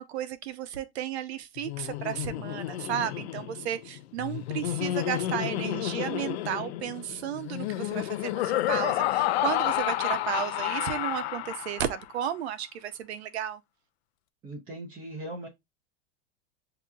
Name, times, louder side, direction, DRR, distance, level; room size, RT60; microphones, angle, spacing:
voice 1, 0.0-13.6, right 10 dB, 85° right, 0.8 m, -33 dB
Laughter, 1.6-12.0, left 14 dB, 80° left, 0.5 m, -30 dB
voice 2, 14.4-15.5, right 1 dB, 15° right, 0.6 m, -39 dB
7.4 x 2.9 x 2.3 m
supercardioid pair, 175°, 32 cm